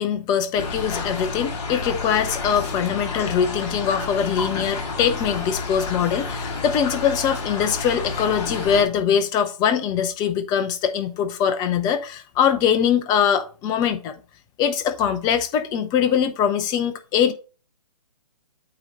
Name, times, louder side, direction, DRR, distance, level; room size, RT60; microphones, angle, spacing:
voice 1, 0.0-14.2 14.6-17.3, left 8 dB, 20° left, 0.7 m, -22 dB
sound 1, 0.5-8.8, left 4 dB, 45° left, 2.1 m, -30 dB
8.7 x 3.1 x 5.5 m
figure-of-eight pair, 135°, 20 cm